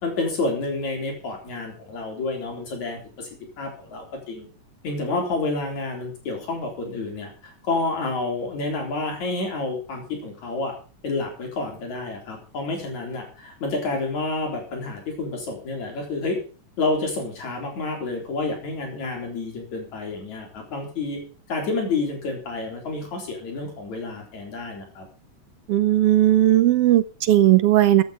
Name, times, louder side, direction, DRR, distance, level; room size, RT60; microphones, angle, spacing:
voice 1, 0.0-3.3 3.6-4.5 4.8-10.7 11.0-16.4 16.8-21.2 21.5-25.1, left 3 dB, 75° left, 2 dB, 5.4 m, -29 dB
voice 2, 25.7-28.0, right 13 dB, 70° right, 14 dB, 1.4 m, -17 dB
15.0 x 9.5 x 5.2 m, 0.39 s
omnidirectional pair, 3.3 m